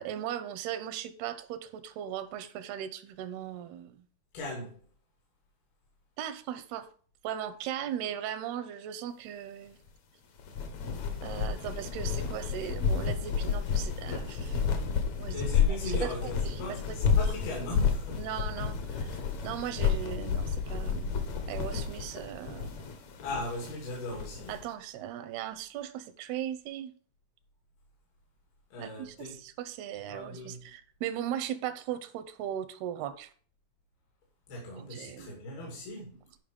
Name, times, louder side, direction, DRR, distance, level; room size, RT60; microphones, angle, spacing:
voice 1, 0.0-4.1 6.2-6.9 7.2-9.8 11.2-14.6 15.2-17.0 17.3-17.4 18.1-21.2 21.5-22.8 24.5-26.9 28.8-33.3 34.9-35.3, right 10 dB, 85° right, 2.8 m, -38 dB
voice 2, 4.3-4.8 15.3-18.2 23.2-24.6 28.7-29.4 30.1-30.6 34.5-36.2, left 2 dB, 75° left, 4.5 m, -39 dB
sound 1, 10.4-24.6, left 6 dB, 60° left, 2.1 m, -31 dB
11.5 x 5.4 x 5.2 m
omnidirectional pair, 4.5 m